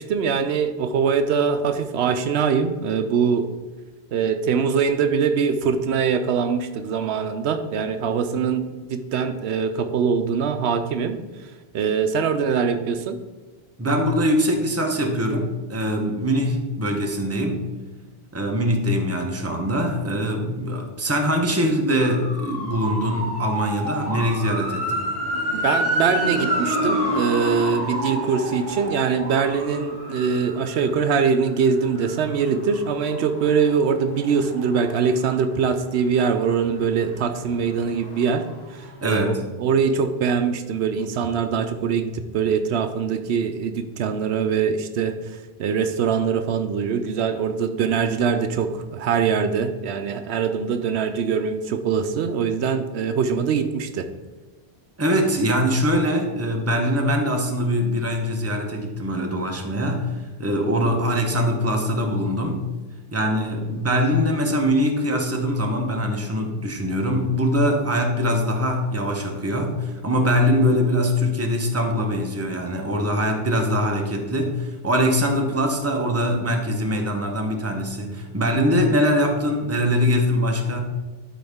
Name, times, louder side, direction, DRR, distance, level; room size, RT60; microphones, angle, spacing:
voice 1, 0.0-3.5 4.1-11.2 11.7-13.2 25.5-38.4 39.0-45.1 45.6-54.1, right 6 dB, 80° right, 9 dB, 0.8 m, -23 dB
voice 2, 13.8-17.6 18.3-25.1 39.0-39.4 55.0-62.6 63.1-80.8, equal, 15° right, 2 dB, 0.8 m, -22 dB
sound 1, 22.0-35.7 36.1-38.7 38.9-39.0, equal, 55° left, 2.9 m, -29 dB
12.0 x 4.2 x 3.5 m, 1.2 s
omnidirectional pair, 1.1 m